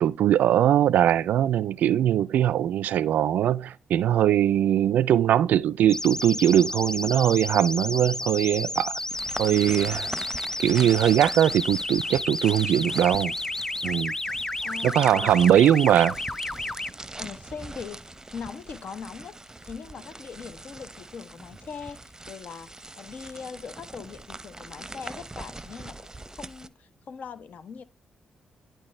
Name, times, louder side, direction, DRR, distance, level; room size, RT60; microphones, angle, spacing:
voice 1, 0.0-9.0 9.4-10.1 10.6-13.3 13.8-14.1 14.8-16.1, right 11 dB, 75° right, 0.3 m, -21 dB
sound 1, 5.9-16.9, left 2 dB, 20° left, 0.5 m, -32 dB
sound 2, 9.1-26.7, right 2 dB, 20° right, 0.7 m, -42 dB
voice 2, 14.6-15.3 15.6-15.7 17.2-27.8, left 6 dB, 65° left, 0.9 m, -41 dB
10.5 x 4.5 x 3.2 m
hypercardioid pair, 45°, 3 cm